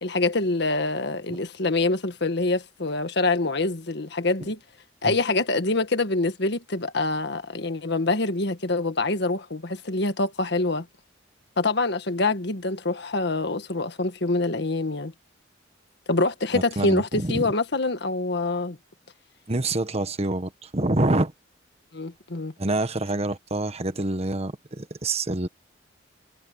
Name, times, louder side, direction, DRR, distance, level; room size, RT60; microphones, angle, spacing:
voice 1, 0.0-4.6 5.0-10.9 11.6-15.1 16.1-18.8 21.9-22.5, left 2 dB, 65° left, 1.6 m, -25 dB
voice 2, 16.5-17.5 19.5-21.3 22.6-25.5, right 2 dB, 35° right, 1.4 m, -26 dB
head